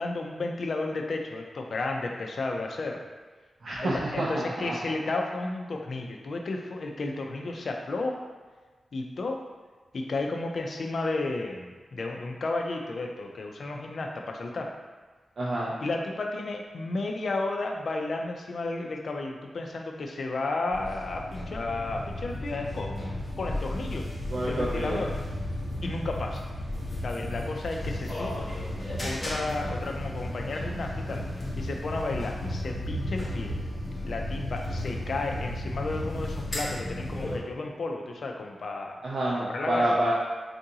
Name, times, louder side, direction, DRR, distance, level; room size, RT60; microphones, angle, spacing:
voice 1, 0.0-3.0 3.8-8.2 8.9-9.4 9.9-14.7 15.8-24.1 24.4-25.2 25.8-26.4 27.0-28.5 29.0-31.2 31.6-33.6 34.0-39.0 39.5-39.9, left 2 dB, 60° left, 2 dB, 0.4 m, -33 dB
voice 2, 3.6-4.8 15.4-15.8 24.3-25.0 39.0-40.1, right 1 dB, 60° right, -6 dB, 0.5 m, -28 dB
sound 1, 20.7-37.4, left 1 dB, 25° left, 0.8 m, -34 dB
4.6 x 2.5 x 2.8 m, 1.3 s
wide cardioid pair, 125°, 0 cm